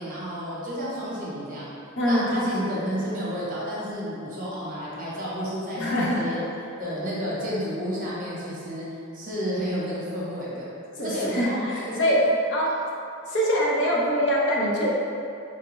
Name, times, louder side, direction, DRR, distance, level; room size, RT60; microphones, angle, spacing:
voice 1, 0.0-1.7 2.0-6.4 6.8-8.9 9.1-10.7 11.0-12.1, equal, 45° right, -7 dB, 0.9 m, -31 dB
voice 2, 2.0-2.5 5.8-6.5 11.0-12.2 12.5-12.7 13.3-14.9, equal, 60° left, -5 dB, 0.7 m, -24 dB
4.8 x 2.2 x 3.0 m, 2.6 s
head